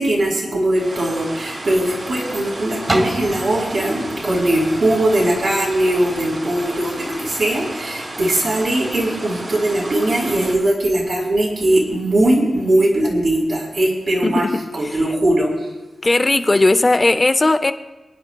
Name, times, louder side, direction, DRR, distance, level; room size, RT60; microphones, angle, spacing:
voice 1, 0.0-14.5 14.7-15.5, right 1 dB, 65° right, -3 dB, 4.1 m, -20 dB
sound 1, 0.7-10.5, right 1 dB, 50° right, 2.7 m, -33 dB
sound 2, 2.9-8.6 9.2-9.3, right 1 dB, 30° right, 0.9 m, -29 dB
voice 2, 14.2-15.0 16.0-17.7, left 2 dB, 25° left, 9 dB, 0.4 m, -17 dB
29.0 x 10.0 x 2.3 m, 1.1 s
wide cardioid pair, 160°, 0 cm